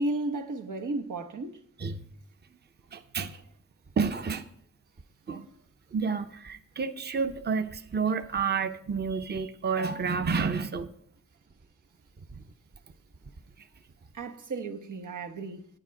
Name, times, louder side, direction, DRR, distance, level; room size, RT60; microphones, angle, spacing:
voice 1, 0.0-1.6 14.1-15.7, right 2 dB, 85° right, 1.2 m, -33 dB
voice 2, 2.9-3.4 4.0-4.5 5.3-5.5 5.9-10.9 12.3-12.4 13.6-13.7, right 5 dB, 35° right, 0.6 m, -30 dB
10.0 x 9.8 x 4.7 m
wide cardioid pair, 135°, 30 cm